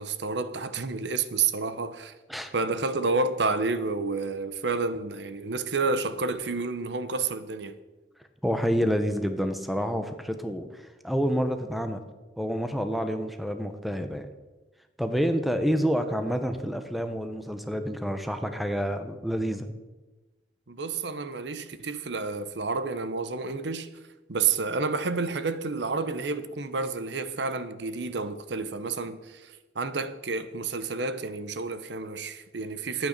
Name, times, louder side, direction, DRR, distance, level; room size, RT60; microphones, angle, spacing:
voice 1, 0.0-2.2 2.5-7.8 20.7-23.9 24.3-33.1, right 4 dB, 75° right, 0.8 m, -30 dB
voice 2, 8.4-12.0 12.4-14.3 15.0-19.7, equal, ahead, 0.9 m, -28 dB
11.5 x 9.1 x 6.6 m
head